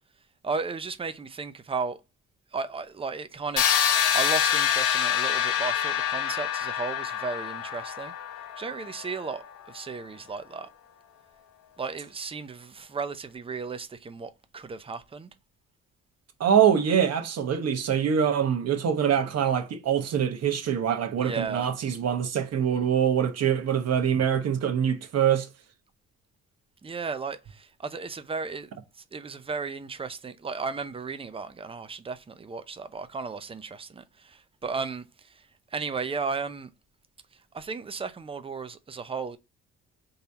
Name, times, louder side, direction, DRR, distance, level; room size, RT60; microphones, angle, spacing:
voice 1, 0.4-2.0 2.5-8.1 8.6-10.7 11.8-15.3 21.2-21.7 26.8-28.7 29.0-36.7 37.3-39.4, right 4 dB, 20° right, 0.5 m, -35 dB
sound 1, 3.6-9.4, left 9 dB, 75° left, 0.9 m, -26 dB
voice 2, 16.4-25.5, right 8 dB, 55° right, 1.0 m, -24 dB
4.0 x 2.8 x 4.6 m
cardioid pair, 90°, 30 cm